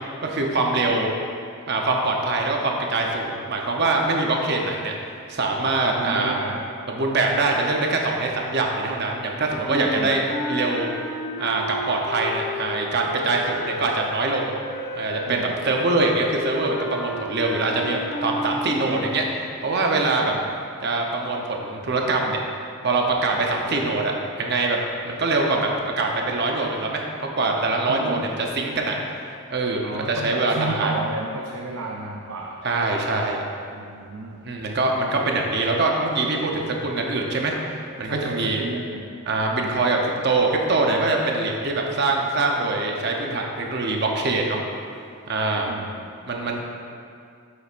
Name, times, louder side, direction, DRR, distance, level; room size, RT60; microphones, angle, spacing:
voice 1, 0.2-1.1 1.7-4.9 5.3-6.4 6.9-10.2 10.5-10.9 11.4-14.5 15.0-19.2 19.6-20.3 20.8-22.4 22.8-24.8 25.0-25.7 26.0-27.0 27.3-29.2 29.5-30.9 32.6-33.4 34.4-38.6 39.3-44.6 45.3-45.7 46.3-46.6, right 3 dB, 50° right, 0 dB, 0.8 m, -23 dB
voice 2, 6.0-6.7 9.9-10.2 15.3-15.5 20.3-20.5 27.9-28.3 29.8-32.6 33.7-34.4 38.0-39.1 39.6-39.8 45.7-46.1, right 2 dB, 80° right, 0 dB, 0.6 m, -32 dB
sound 1, 9.6-19.3, left 1 dB, 45° left, 1.0 m, -32 dB
8.3 x 7.7 x 2.5 m, 2.4 s
head